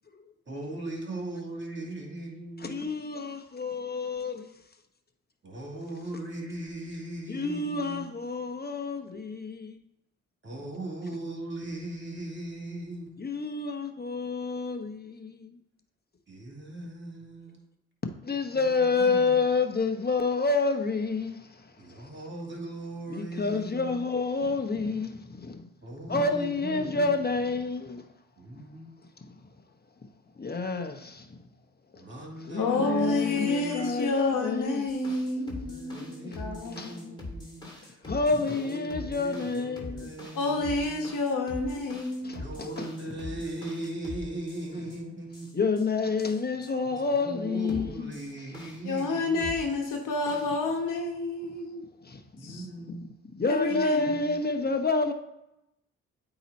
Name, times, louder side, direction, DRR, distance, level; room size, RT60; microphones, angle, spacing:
voice 1, 0.5-2.9 5.4-8.0 10.4-13.2 16.3-17.6 18.6-19.4 21.8-24.0 25.8-27.2 28.4-29.0 31.9-33.9 35.4-38.0 38.5-41.1 42.2-45.5 46.9-49.6 52.4-53.1 53.7-54.4, right 1 dB, 35° right, 2.3 m, -39 dB
voice 2, 2.6-4.5 7.3-9.7 13.2-15.6 18.2-22.3 23.1-25.7 26.1-28.0 29.2-29.3 30.4-31.4 31.9-32.0 32.4-34.9 36.3-36.4 36.7-37.0 38.0-40.2 42.2-43.1 45.5-48.6 52.0-52.6 52.9-53.0 53.3-55.1, left 4 dB, 30° left, 1.0 m, -29 dB
voice 3, 32.6-37.3 40.3-42.4 48.8-51.9 52.4-52.7 53.5-54.2, left 3 dB, 75° left, 1.2 m, -29 dB
sound 1, 34.9-45.0 45.3-45.8 46.2-46.7 47.7-49.1 49.4-50.5, left 1 dB, 15° left, 2.2 m, -43 dB
8.4 x 3.0 x 4.2 m
cardioid pair, 60°, 31 cm